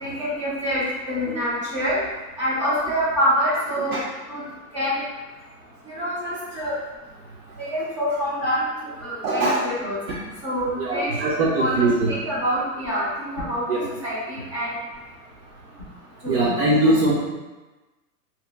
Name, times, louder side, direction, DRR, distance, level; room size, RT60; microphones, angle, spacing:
voice 1, 0.0-2.0 2.4-4.0 4.3-4.4 4.7-5.0 5.9-6.7 7.7-8.6 9.0-13.6 14.0-14.7 16.2-16.4 16.8-17.0, equal, 20° right, -9 dB, 0.4 m, -26 dB
voice 2, 9.2-9.6 10.1-10.2 10.8-12.1 13.7-13.8 16.3-17.1, right 2 dB, 65° right, -5 dB, 0.7 m, -21 dB
2.8 x 2.2 x 3.4 m, 1.2 s
supercardioid pair, 170°, 48 cm